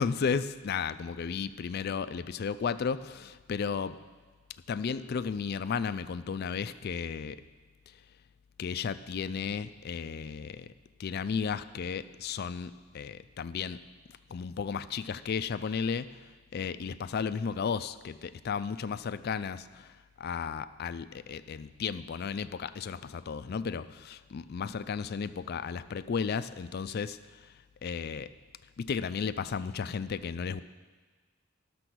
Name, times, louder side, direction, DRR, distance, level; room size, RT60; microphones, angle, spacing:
voice 1, 0.0-4.0 4.7-7.4 8.6-10.7 11.0-13.8 14.3-16.2 16.5-27.5 27.8-28.3 28.8-30.6, left 6 dB, 50° left, 13 dB, 0.4 m, -34 dB
11.5 x 6.8 x 6.2 m, 1.4 s
head